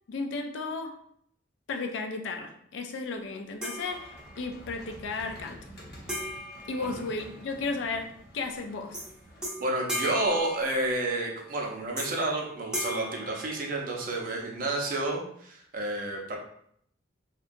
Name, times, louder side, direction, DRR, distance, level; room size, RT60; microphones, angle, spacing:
voice 1, 0.1-0.9 1.7-5.6 6.7-8.1 8.3-9.0, left 3 dB, 80° left, 4 dB, 0.4 m, -34 dB
sound 1, 3.6-4.6 6.1-7.7 8.9-9.1 9.4-11.2 12.0-12.4 12.7-14.2, equal, 5° right, 0.6 m, -37 dB
sound 2, 3.9-9.5, equal, 60° left, 0.8 m, -49 dB
voice 2, 9.6-16.4, right 2 dB, 50° right, 0 dB, 0.5 m, -30 dB
2.8 x 2.2 x 2.5 m, 0.69 s
head